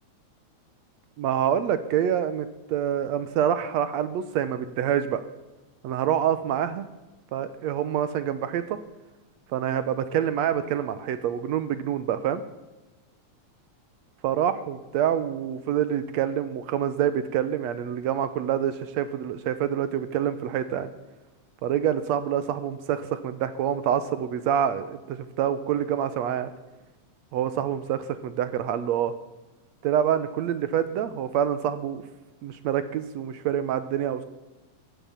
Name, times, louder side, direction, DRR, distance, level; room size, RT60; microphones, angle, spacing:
voice 1, 1.2-5.2 5.8-6.9 7.3-8.8 9.5-12.4 14.2-20.9 21.6-26.5 27.3-29.1 29.8-32.0 32.4-34.2, right 9 dB, 75° right, 12 dB, 1.9 m, -26 dB
15.5 x 11.0 x 7.2 m, 1.1 s
omnidirectional pair, 3.4 m